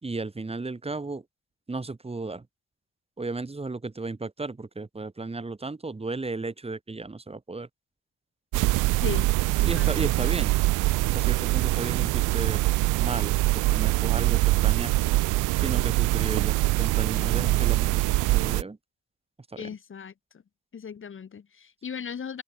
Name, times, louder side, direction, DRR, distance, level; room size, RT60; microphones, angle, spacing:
voice 1, 0.0-1.2 1.7-2.5 3.2-7.7 9.6-10.6 11.0-12.7 13.0-15.1 15.6-18.8 19.5-19.7, right 3 dB, 20° right, 2.7 m, -34 dB
sound 1, 8.5-18.6, right 20 dB, 90° right, 0.5 m, -23 dB
voice 2, 17.3-17.8 19.6-20.1 20.7-22.4, left 7 dB, 40° left, 2.0 m, -37 dB
cardioid pair, 90°, 30 cm